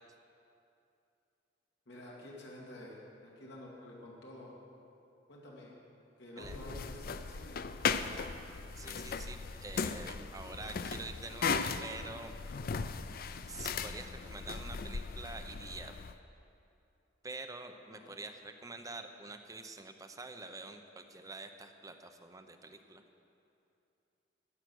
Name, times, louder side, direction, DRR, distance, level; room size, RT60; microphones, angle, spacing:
voice 1, 1.9-4.6 5.3-5.8 6.2-7.8 18.0-18.2, left 1 dB, 70° left, -4 dB, 2.4 m, -49 dB
sound 1, 6.4-16.1, left 5 dB, 55° left, 0.5 m, -37 dB
voice 2, 8.8-12.3 13.5-15.9 17.2-23.0, right 3 dB, 20° right, 6 dB, 0.7 m, -46 dB
14.0 x 8.8 x 6.3 m, 2.7 s
head